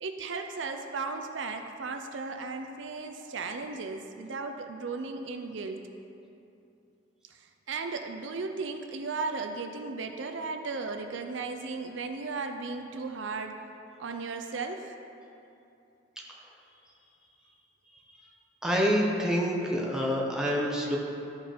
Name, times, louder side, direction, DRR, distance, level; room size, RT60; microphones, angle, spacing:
voice 1, 0.0-5.8 7.3-13.6 14.0-15.0, right 4 dB, 70° right, 5 dB, 0.5 m, -36 dB
voice 2, 18.6-21.0, equal, 5° right, -2 dB, 0.9 m, -27 dB
12.0 x 5.1 x 4.4 m, 2.7 s
head